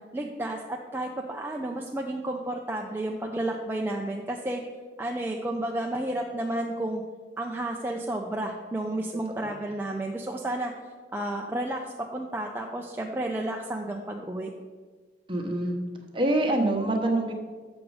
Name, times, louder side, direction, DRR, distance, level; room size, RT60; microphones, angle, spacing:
voice 1, 0.1-4.6 5.0-7.0 7.4-10.7 11.1-14.5, right 1 dB, 10° right, 0 dB, 0.5 m, -31 dB
voice 2, 15.3-15.8 16.1-17.3, right 1 dB, 30° right, 2 dB, 1.0 m, -25 dB
7.5 x 6.2 x 4.8 m, 1.4 s
head